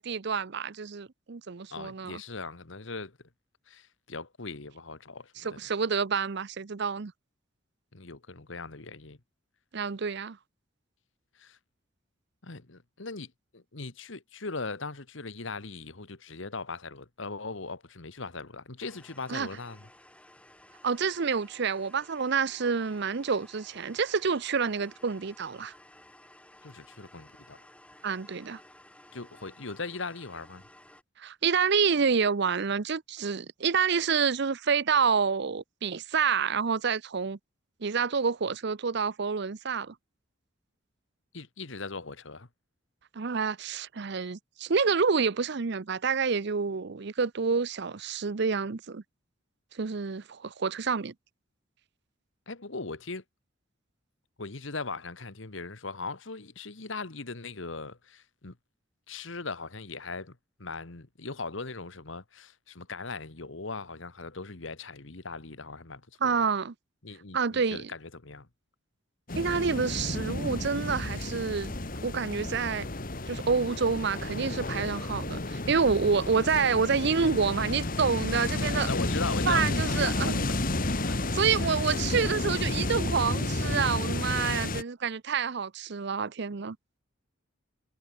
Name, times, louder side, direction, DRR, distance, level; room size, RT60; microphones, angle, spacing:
voice 1, 0.0-2.2 5.4-7.1 9.7-10.4 19.3-19.5 20.8-25.7 28.0-28.6 31.2-37.4 37.8-39.9 43.1-49.0 49.7-51.1 66.2-66.7 67.3-67.9 69.4-71.7 72.0-72.8 73.3-78.9 79.5-80.5 81.3-86.8, right 5 dB, 55° right, 0.6 m, -28 dB
voice 2, 1.7-3.2 3.7-5.6 7.9-9.2 11.4-11.6 12.4-19.8 26.6-27.6 29.1-30.6 41.3-42.5 52.5-53.2 54.4-58.5 59.1-66.4 67.0-68.5 78.9-80.6 81.0-81.2 81.6-81.8, left 3 dB, 70° left, 1.6 m, -39 dB
sound 1, 18.8-31.0, left 1 dB, 5° left, 6.0 m, -55 dB
sound 2, 69.3-84.8, left 2 dB, 45° left, 1.9 m, -31 dB
head